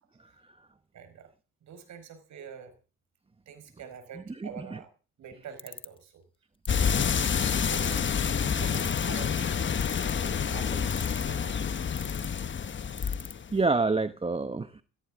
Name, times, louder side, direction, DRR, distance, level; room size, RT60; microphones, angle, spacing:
voice 1, 0.9-1.3 1.6-2.7 3.5-4.9 5.2-6.2 6.8-11.9, right 7 dB, 70° right, 9 dB, 4.8 m, -47 dB
voice 2, 4.4-4.8 13.0-13.1 13.5-14.8, right 3 dB, 20° right, 10 dB, 1.0 m, -28 dB
sound 1, 5.6-6.0 6.7-7.0 7.7-8.1 8.7-9.2 9.8-10.3 10.9-11.4 12.0-12.3 13.0-13.3, left 3 dB, 15° left, 1.1 m, -40 dB
sound 2, 6.7-13.6, left 7 dB, 40° left, 1.1 m, -28 dB
18.0 x 15.5 x 3.7 m, 0.36 s
cardioid pair, 90°, 30 cm